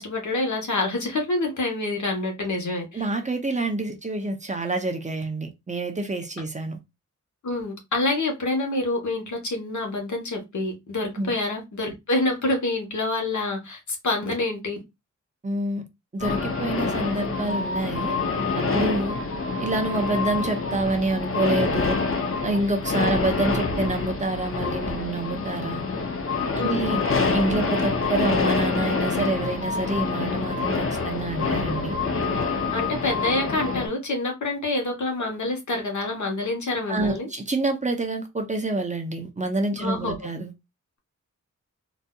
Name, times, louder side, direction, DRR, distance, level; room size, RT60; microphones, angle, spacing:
voice 1, 0.0-3.0 7.4-14.8 22.9-23.2 26.6-26.8 32.7-37.3 39.8-40.3, left 2 dB, 70° left, 1.1 m, -27 dB
voice 2, 2.9-6.8 11.2-11.4 15.4-15.8 16.1-18.1 18.6-19.2 19.6-22.0 22.4-25.8 26.5-27.0 27.3-31.9 36.9-40.5, right 2 dB, 25° right, 0.6 m, -27 dB
sound 1, 16.2-33.9, left 4 dB, 45° left, 0.6 m, -26 dB
4.0 x 2.6 x 2.3 m
wide cardioid pair, 140°, 31 cm